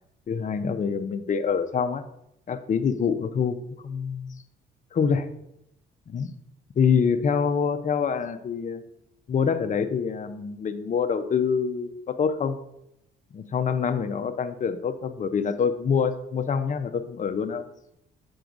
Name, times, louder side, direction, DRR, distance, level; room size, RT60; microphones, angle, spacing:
voice 1, 0.3-2.0 2.5-3.5 3.8-4.4 4.9-5.3 6.1-6.3 6.8-8.8 9.3-12.5 13.3-17.6, left 6 dB, 40° left, 9 dB, 0.6 m, -25 dB
7.7 x 6.9 x 2.6 m, 0.80 s
cardioid pair, 90°, 20 cm